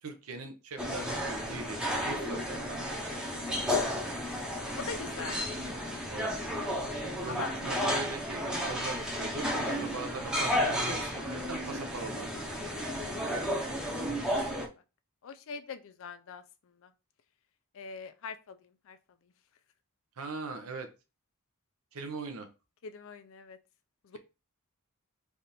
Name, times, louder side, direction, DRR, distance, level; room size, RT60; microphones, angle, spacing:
voice 1, 0.0-1.8 2.0-2.8 5.2-5.5 6.1-6.3 7.2-12.4 20.2-20.9 21.9-22.5, right 3 dB, 70° right, 0.6 m, -41 dB
sound 1, 0.8-14.7, equal, 5° right, 0.7 m, -33 dB
voice 2, 2.8-4.5 4.8-5.4 7.2-7.6 12.9-13.6 14.3-14.6 15.2-16.9 17.7-19.0 19.2-19.3 22.8-23.6 24.0-24.2, left 5 dB, 65° left, 0.4 m, -44 dB
3.4 x 2.5 x 4.1 m
head